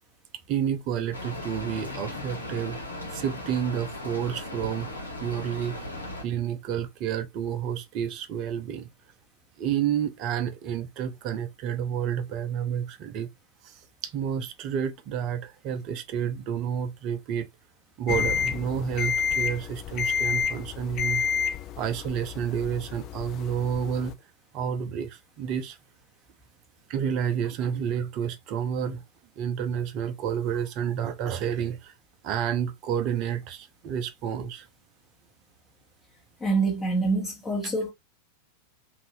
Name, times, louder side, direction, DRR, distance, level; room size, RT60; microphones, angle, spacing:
voice 1, 0.5-2.8 3.1-5.9 6.2-8.9 9.6-13.3 13.6-13.7 14.0-17.5 18.0-21.3 21.8-24.2 24.5-25.8 26.9-29.0 29.4-31.9 32.2-34.7, right 8 dB, 40° right, 0.5 m, -30 dB
Rain, 1.1-6.2, left 1 dB, 80° left, 0.8 m, -37 dB
sound 1, 18.1-24.1, left 7 dB, 35° left, 0.3 m, -29 dB
voice 2, 36.4-37.9, right 3 dB, 20° left, 1.1 m, -26 dB
2.7 x 2.6 x 3.0 m
figure-of-eight pair, 90°, 0 cm